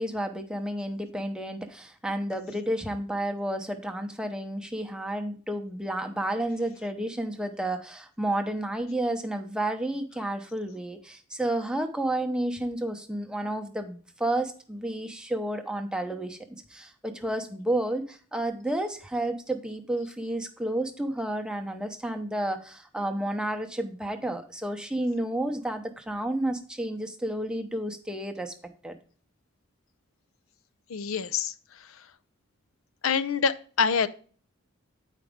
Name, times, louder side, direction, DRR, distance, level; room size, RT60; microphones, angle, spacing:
voice 1, 0.0-16.4 16.7-28.5 28.8-29.0, right 1 dB, 5° right, 0.7 m, -31 dB
voice 2, 30.9-31.5 33.0-34.1, left 6 dB, 80° left, 0.5 m, -25 dB
8.9 x 5.0 x 3.5 m
head